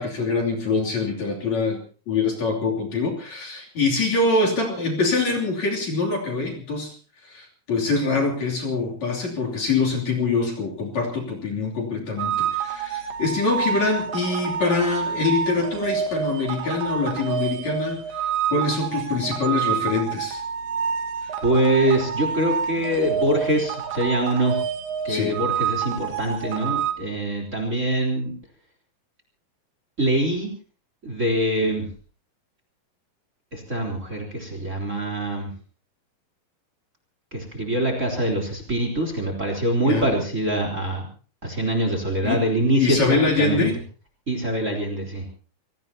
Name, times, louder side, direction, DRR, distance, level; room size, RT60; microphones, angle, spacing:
voice 1, 0.0-1.8 2.1-6.9 7.2-20.4 21.2-21.3 25.1-25.3 39.8-40.1 42.2-42.4 42.7-43.7, left 3 dB, 50° left, -1 dB, 4.1 m, -24 dB
sound 1, 12.2-26.9, right 7 dB, 85° right, 3.5 m, -28 dB
voice 2, 21.4-24.6 25.0-28.3 30.0-30.5 31.0-31.9 33.5-35.5 37.3-41.1 41.4-43.7 44.3-45.2, right 1 dB, 20° right, 3 dB, 3.7 m, -24 dB
27.5 x 18.0 x 2.9 m, 0.38 s
omnidirectional pair, 4.4 m